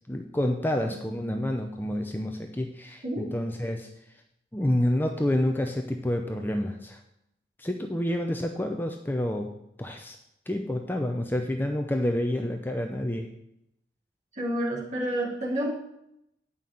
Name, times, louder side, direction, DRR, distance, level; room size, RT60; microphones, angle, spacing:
voice 1, 0.1-3.9 4.5-7.0 7.6-9.5 9.8-10.2 10.5-13.3, left 1 dB, 10° left, 4 dB, 0.6 m, -28 dB
voice 2, 14.3-15.7, right 1 dB, 40° right, -3 dB, 3.1 m, -29 dB
8.9 x 5.6 x 7.5 m, 0.79 s
head